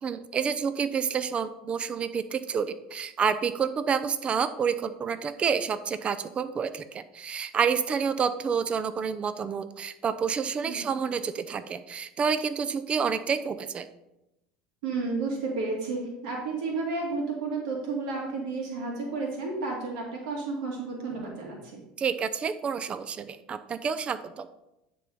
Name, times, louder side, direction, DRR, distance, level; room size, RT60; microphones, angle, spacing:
voice 1, 0.0-13.9 22.0-24.5, right 6 dB, 30° right, 12 dB, 0.5 m, -29 dB
voice 2, 14.8-21.8, right 3 dB, 80° right, -1 dB, 1.9 m, -32 dB
10.5 x 3.5 x 5.3 m, 0.90 s
supercardioid pair, 95°, 4 cm